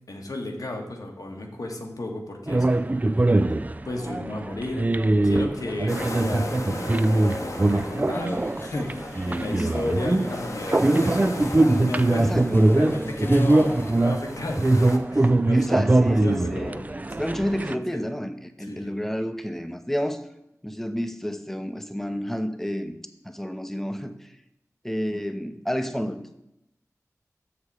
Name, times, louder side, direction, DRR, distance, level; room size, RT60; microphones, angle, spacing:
voice 1, 0.1-2.7 3.8-4.9 5.2-6.6 6.9-11.3 11.7-12.3 12.7-17.2 17.9-18.0 18.7-18.9, left 2 dB, 80° left, 2 dB, 1.4 m, -34 dB
sound 1, 2.5-17.8, right 2 dB, 25° right, 0.4 m, -22 dB
sound 2, 5.9-15.0, left 2 dB, 60° left, 1.0 m, -38 dB
sound 3, 8.1-14.0, left 2 dB, 40° left, 0.6 m, -41 dB
voice 2, 9.4-9.7 12.3-13.1 15.5-16.8 17.2-20.2 20.6-22.9 23.2-24.3 24.8-26.2, equal, 5° left, 8 dB, 0.7 m, -30 dB
7.1 x 6.6 x 4.8 m, 0.85 s
wide cardioid pair, 65°, 6 cm